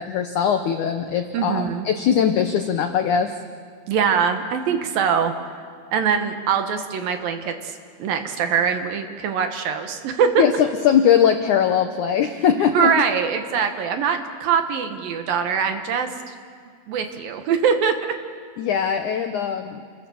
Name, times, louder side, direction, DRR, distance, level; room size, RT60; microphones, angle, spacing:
voice 1, 0.0-3.3 10.4-12.9 18.6-19.8, left 8 dB, 85° left, 6 dB, 1.7 m, -20 dB
voice 2, 1.3-1.9 3.9-5.3 5.9-10.4 12.7-16.3 16.9-18.0, right 7 dB, 65° right, 6 dB, 2.7 m, -23 dB
29.0 x 22.5 x 7.1 m, 2.1 s
omnidirectional pair, 4.9 m